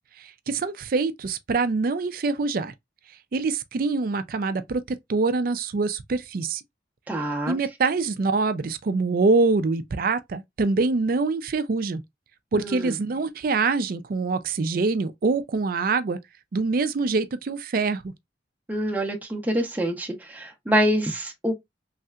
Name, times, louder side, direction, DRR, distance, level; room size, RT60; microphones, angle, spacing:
voice 1, 0.2-2.7 3.3-4.8 5.1-6.6 7.5-12.0 12.5-16.2 16.5-18.1, right 3 dB, 50° right, 0.4 m, -25 dB
voice 2, 7.1-7.6 12.5-13.0 18.7-21.5, equal, 10° right, 0.6 m, -26 dB
3.2 x 2.7 x 2.3 m
head